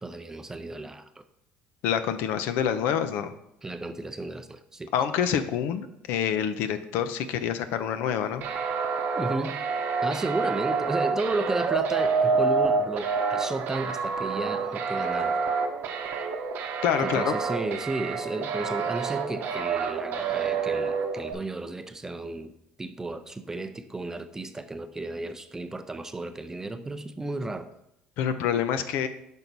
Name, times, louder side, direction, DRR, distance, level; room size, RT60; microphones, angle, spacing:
voice 1, 0.0-1.2 3.6-4.9 9.1-9.6 10.0-15.4 17.0-22.5 22.8-27.7, right 2 dB, 15° right, 9 dB, 0.5 m, -33 dB
voice 2, 1.8-3.3 4.9-8.4 16.8-17.3 28.2-29.1, left 8 dB, 75° left, 9 dB, 0.6 m, -27 dB
sound 1, 8.4-21.3, right 5 dB, 60° right, 0.8 m, -28 dB
5.4 x 4.0 x 6.0 m, 0.81 s
cardioid pair, 110°, 4 cm